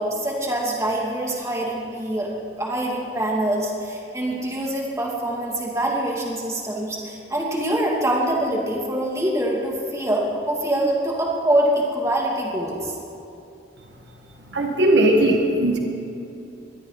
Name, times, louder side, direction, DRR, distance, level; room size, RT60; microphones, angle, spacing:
voice 1, 0.0-2.3 2.6-12.9, right 1 dB, 15° right, -3 dB, 2.7 m, -24 dB
voice 2, 14.5-15.8, right 1 dB, 75° right, 1 dB, 1.8 m, -18 dB
22.0 x 13.5 x 4.2 m, 2.8 s
head